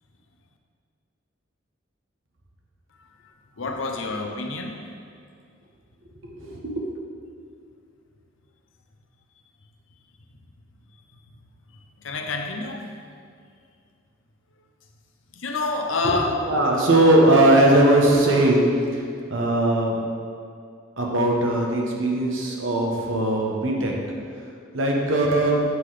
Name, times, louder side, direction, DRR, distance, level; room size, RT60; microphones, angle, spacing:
voice 1, 3.6-4.8 12.0-12.8 15.3-16.4, left 3 dB, 75° left, 3 dB, 0.7 m, -27 dB
voice 2, 6.2-6.8 16.4-18.6 18.9-19.0 19.3-19.9 21.0-23.9 24.7-25.6, right 1 dB, 75° right, -1 dB, 1.1 m, -19 dB
8.2 x 3.9 x 4.9 m, 2.3 s
head